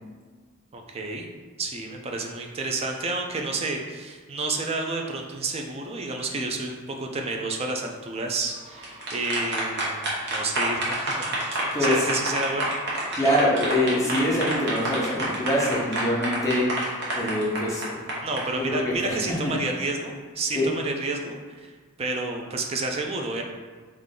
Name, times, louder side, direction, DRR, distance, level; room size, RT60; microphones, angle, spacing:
voice 1, 0.7-1.3 1.6-12.7 13.1-13.2 18.2-23.4, right 3 dB, 30° right, 2 dB, 0.4 m, -30 dB
sound 1, 8.6-18.4, right 1 dB, 55° right, 1.0 m, -28 dB
voice 2, 11.7-12.1 13.1-18.2 18.6-19.5 20.5-20.7, left 1 dB, 15° left, -5 dB, 0.9 m, -25 dB
3.7 x 3.2 x 3.7 m, 1.5 s
head